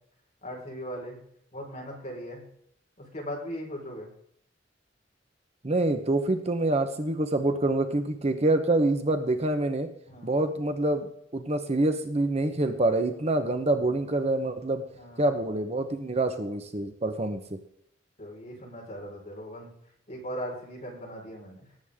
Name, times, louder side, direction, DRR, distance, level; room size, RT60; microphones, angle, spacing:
voice 1, 0.4-1.2 1.5-2.4 3.0-4.1 10.1-10.4 14.9-15.2 18.2-19.7 20.1-21.6, equal, 35° left, -2 dB, 4.6 m, -38 dB
voice 2, 5.6-9.9 10.2-14.8 15.2-17.4, right 2 dB, 35° right, 7 dB, 1.0 m, -26 dB
18.0 x 8.2 x 3.6 m, 0.69 s
head